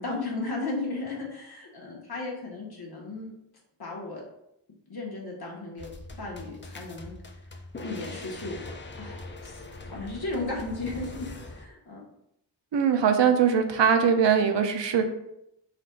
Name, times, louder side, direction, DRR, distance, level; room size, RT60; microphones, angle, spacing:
voice 1, 0.0-3.3 3.8-4.2 4.9-5.9 6.2-7.1 7.8-8.6 9.0-12.0, left 2 dB, 60° left, -2 dB, 1.4 m, -35 dB
sound 1, 5.8-11.7, left 2 dB, 30° left, 0.5 m, -42 dB
voice 2, 12.7-15.1, right 7 dB, 80° right, 6 dB, 0.7 m, -21 dB
4.1 x 2.5 x 4.5 m, 0.79 s
wide cardioid pair, 95°, 43 cm